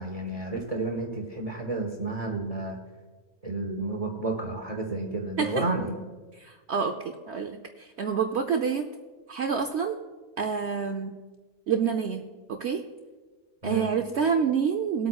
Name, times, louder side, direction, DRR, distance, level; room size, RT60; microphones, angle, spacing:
voice 1, 0.0-2.8 3.4-5.9 13.6-13.9, right 2 dB, 30° right, 2 dB, 1.1 m, -31 dB
voice 2, 6.4-6.9 7.3-8.9 9.3-10.0 10.4-11.1 11.7-12.2 12.5-12.8 13.6-15.1, right 6 dB, 60° right, 5 dB, 0.8 m, -27 dB
20.0 x 8.4 x 2.3 m, 1.3 s
omnidirectional pair, 1.5 m